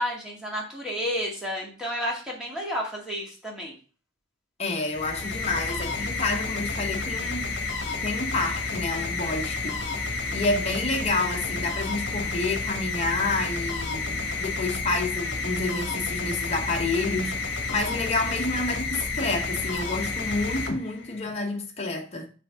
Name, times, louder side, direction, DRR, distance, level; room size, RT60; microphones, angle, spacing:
voice 1, 0.0-3.7, equal, 5° right, 1.8 m, -31 dB
voice 2, 4.6-7.6 8.0-22.3, left 2 dB, 35° left, 1.0 m, -29 dB
sound 1, 4.8-21.4, left 3 dB, 60° left, 1.1 m, -30 dB
6.0 x 3.5 x 4.9 m
head